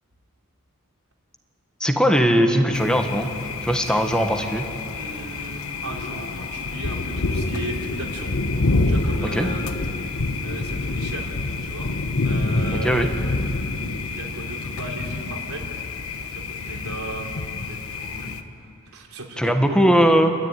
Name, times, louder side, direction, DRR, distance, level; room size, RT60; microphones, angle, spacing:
voice 1, 1.8-3.3 3.6-4.6 9.2-9.5 12.8-13.1 19.4-20.3, equal, 5° left, 4 dB, 1.6 m, -19 dB
Thunder, 2.7-18.4, left 3 dB, 75° left, 1.2 m, -27 dB
voice 2, 4.9-8.4 8.9-9.7 10.4-12.0 12.2-13.1 14.1-15.7 16.3-19.9, right 2 dB, 90° right, 0 dB, 3.5 m, -36 dB
30.0 x 13.0 x 9.4 m, 2.6 s
head